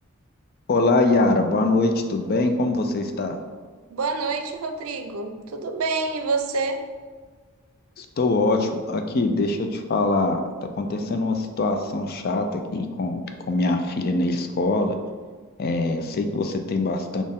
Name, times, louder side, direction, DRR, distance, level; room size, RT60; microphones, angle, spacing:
voice 1, 0.7-3.4 8.0-10.4 10.8-15.0 15.6-17.2, left 2 dB, 45° left, 6 dB, 0.4 m, -23 dB
voice 2, 3.9-6.9, right 3 dB, 90° right, 7 dB, 0.5 m, -27 dB
4.2 x 3.0 x 3.6 m, 1.5 s
head